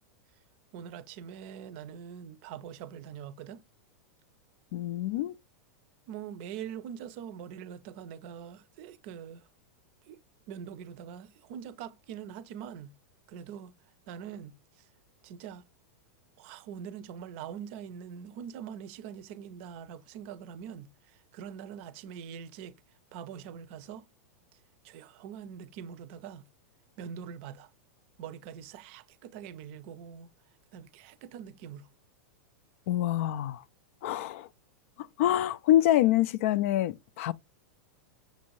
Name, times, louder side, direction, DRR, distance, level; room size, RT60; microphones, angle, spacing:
voice 1, 0.7-3.6 6.1-9.5 10.1-10.2 10.5-13.0 13.3-13.7 14.1-14.5 14.8-14.9 15.2-15.6 16.4-22.8 23.1-24.1 24.8-26.5 27.0-27.7 28.2-30.3 30.7-31.9, right 8 dB, 55° right, 0.5 m, -43 dB
voice 2, 4.7-5.3 32.9-33.6 34.0-34.5 35.0-37.3, left 13 dB, 65° left, 0.3 m, -26 dB
6.4 x 2.6 x 3.0 m
supercardioid pair, 130°, 8 cm